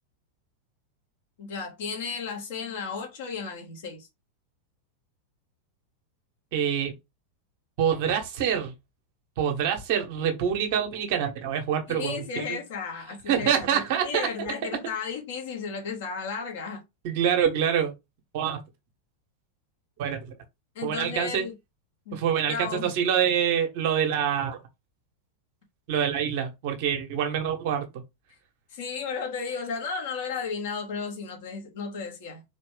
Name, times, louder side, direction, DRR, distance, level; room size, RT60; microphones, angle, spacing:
voice 1, 1.4-4.1 11.9-16.8 20.7-21.5 22.0-22.2 22.5-22.9 28.7-32.4, left 5 dB, 55° left, 1.5 m, -34 dB
voice 2, 6.5-6.9 7.8-8.7 9.4-12.6 13.3-14.5 17.0-17.9 18.3-18.6 20.0-20.4 20.8-21.4 22.1-24.6 25.9-27.8, right 8 dB, 50° right, 1.2 m, -26 dB
4.1 x 3.1 x 3.3 m
figure-of-eight pair, 90°, 0 cm